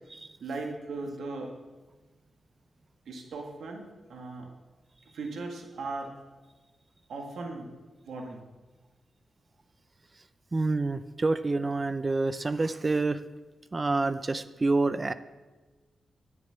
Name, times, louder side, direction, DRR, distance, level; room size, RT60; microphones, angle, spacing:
voice 1, 0.4-1.6 3.1-3.8 4.1-4.5 5.1-6.1 7.1-7.7 8.0-8.4, right 3 dB, 80° right, 2 dB, 1.9 m, -37 dB
voice 2, 10.5-13.2 13.7-15.1, right 3 dB, 35° right, 13 dB, 0.6 m, -27 dB
9.9 x 6.9 x 8.1 m, 1.2 s
cardioid pair, 55°, 0 cm